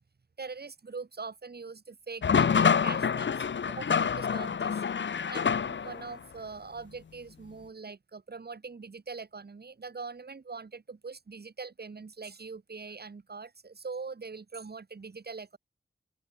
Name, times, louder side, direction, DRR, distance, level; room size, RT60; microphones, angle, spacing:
voice 1, 0.4-4.8 5.2-15.6, right 4 dB, 50° right, 7.7 m, -42 dB
sound 1, 2.2-6.1, left 6 dB, 65° left, 1.1 m, -27 dB
open air
wide cardioid pair, 135°, 21 cm